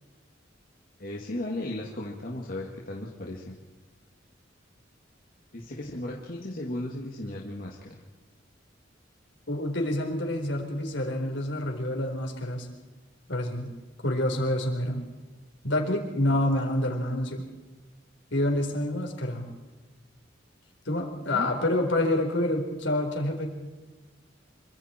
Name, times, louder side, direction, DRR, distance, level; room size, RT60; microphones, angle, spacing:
voice 1, 1.0-3.6 5.5-8.0 21.3-21.6, left 1 dB, 50° left, -2 dB, 2.2 m, -36 dB
voice 2, 9.5-12.7 13.3-13.7 14.0-15.0 15.6-17.5 18.3-19.5 20.8-23.5, left 1 dB, 70° left, 2 dB, 4.3 m, -27 dB
26.5 x 24.5 x 4.5 m, 1.2 s
head